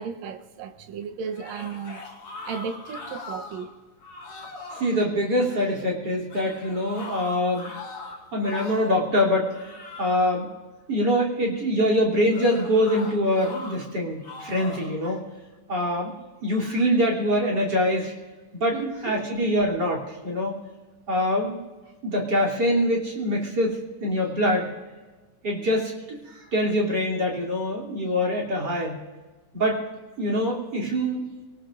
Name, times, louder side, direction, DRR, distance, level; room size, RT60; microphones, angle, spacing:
voice 1, 0.0-2.1 2.5-3.7 18.7-19.2, right 6 dB, 70° right, 7 dB, 1.9 m, -34 dB
sound 1, 1.3-3.7 4.0-4.9 6.3-9.0 9.4-10.4 12.3-13.8 14.2-15.0, left 3 dB, 45° left, 3.9 m, -40 dB
voice 2, 4.7-7.7 8.3-9.5 10.0-10.5 10.9-15.2 15.7-16.1 16.4-18.1 18.5-18.8 19.0-20.5 21.1-21.6 22.0-24.7 25.4-29.0 29.5-29.8 30.2-31.2, equal, 30° right, -4 dB, 3.4 m, -24 dB
28.5 x 18.5 x 2.5 m, 1.3 s
omnidirectional pair, 3.8 m